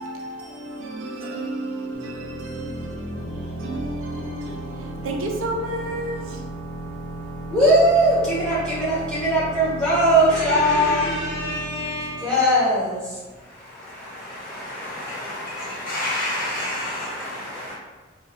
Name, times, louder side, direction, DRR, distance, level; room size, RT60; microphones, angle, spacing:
voice 1, 0.0-6.5, right 1 dB, 70° right, 0.5 m, -32 dB
sound 1, 1.9-13.4, right 1 dB, 30° left, 0.5 m, -35 dB
voice 2, 7.5-15.3 16.5-17.7, equal, 5° left, 1.1 m, -22 dB
voice 3, 14.0-17.7, left 1 dB, 45° left, 0.9 m, -30 dB
2.4 x 2.2 x 2.9 m
head